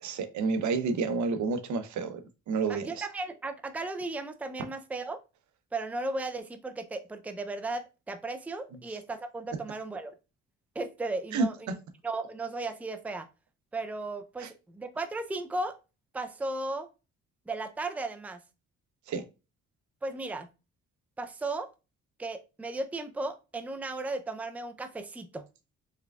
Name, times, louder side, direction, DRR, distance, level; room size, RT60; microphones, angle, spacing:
voice 1, 0.0-3.1 11.3-11.7 14.4-14.5 19.1-19.2, right 4 dB, 70° right, 0.8 m, -30 dB
voice 2, 2.7-5.2 5.7-10.1 10.8-11.8 12.0-13.3 13.7-15.8 16.1-16.9 17.5-18.4 20.0-20.5 21.2-21.7 22.2-25.5, right 2 dB, 5° right, 0.4 m, -35 dB
4.6 x 3.5 x 2.3 m
cardioid pair, 90°, 30 cm